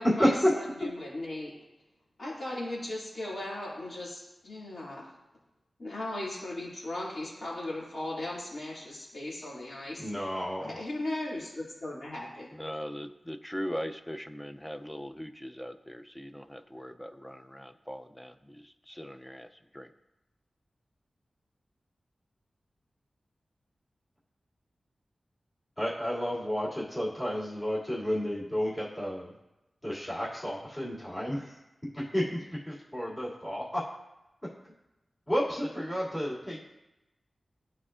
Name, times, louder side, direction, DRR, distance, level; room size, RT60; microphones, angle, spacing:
voice 1, 0.0-1.5 2.2-5.1 5.8-10.1 10.6-12.5, left 1 dB, 65° left, -5 dB, 2.4 m, -37 dB
voice 2, 10.0-10.8 25.8-29.3 29.8-31.6 31.9-33.9 35.3-36.7, equal, 25° left, -8 dB, 2.5 m, -32 dB
voice 3, 12.5-19.5 19.7-19.9, equal, 10° left, 9 dB, 0.4 m, -40 dB
12.0 x 4.2 x 2.5 m, 0.95 s
wide cardioid pair, 70°, 0 cm